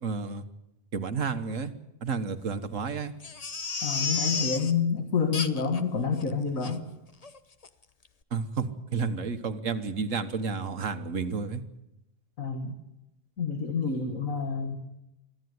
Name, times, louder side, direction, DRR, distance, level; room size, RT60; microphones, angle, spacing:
voice 1, 0.0-0.4 0.9-1.7 2.0-3.1 8.3-11.6, right 5 dB, 75° right, 9 dB, 1.7 m, -31 dB
Crying sobbing, 3.2-4.7 5.3-5.8 6.2-6.3 6.6-6.8 7.2-7.4 7.6-7.7, left 4 dB, 30° left, 0.9 m, -32 dB
voice 2, 3.8-6.8 12.4-12.7 13.4-14.8, left 5 dB, 90° left, 5 dB, 2.2 m, -28 dB
24.0 x 14.5 x 9.6 m, 0.90 s
omnidirectional pair, 1.4 m